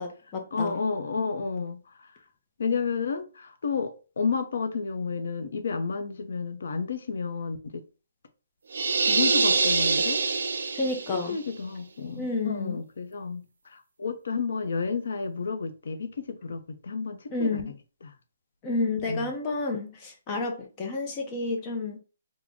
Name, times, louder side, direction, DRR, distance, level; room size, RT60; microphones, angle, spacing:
voice 1, 0.0-0.8 10.7-11.4 12.2-12.8 17.3-17.7 18.6-22.0, left 3 dB, 15° left, 0.5 m, -30 dB
voice 2, 0.5-2.1 2.6-7.8 9.1-10.2 11.1-17.6 18.0-18.1 19.1-19.3, left 5 dB, 60° left, 0.6 m, -31 dB
sound 1, 8.7-11.3, right 4 dB, 75° right, 0.5 m, -24 dB
3.7 x 2.0 x 3.4 m
hypercardioid pair, 175°, 0 cm